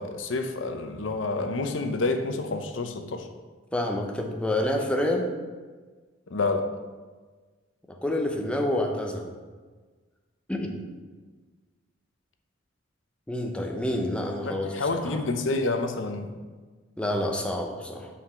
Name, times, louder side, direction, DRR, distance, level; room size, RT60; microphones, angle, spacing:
voice 1, 0.0-3.3 6.3-6.7 14.4-16.4, left 3 dB, 70° left, 6 dB, 0.7 m, -28 dB
voice 2, 3.7-5.3 7.9-9.3 10.5-10.7 13.3-15.2 17.0-18.1, left 1 dB, 5° left, 1 dB, 0.8 m, -28 dB
6.0 x 4.9 x 5.6 m, 1.4 s
head